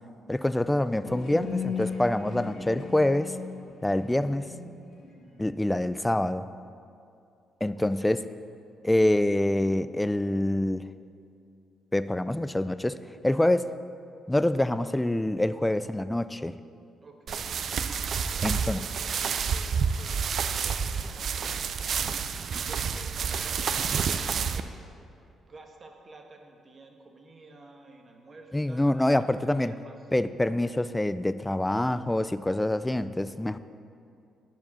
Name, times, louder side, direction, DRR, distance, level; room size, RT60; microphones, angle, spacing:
voice 1, 0.3-3.4 3.8-4.5 5.4-6.5 7.6-8.2 8.8-10.9 11.9-13.7 14.3-16.6 18.4-18.8 28.5-29.7 30.1-33.6, left 1 dB, 10° left, 14 dB, 0.3 m, -26 dB
sound 1, 1.0-5.9, left 5 dB, 60° left, 1.9 m, -37 dB
voice 2, 7.7-8.1 17.0-17.5 18.2-18.9 19.4-21.3 21.6-21.8 22.7-24.9 25.5-29.9, right 3 dB, 35° right, 3 dB, 1.2 m, -50 dB
sound 2, 17.3-24.6, right 6 dB, 55° right, 0.4 m, -29 dB
10.5 x 4.9 x 6.8 m, 2.5 s
cardioid pair, 90°, 0 cm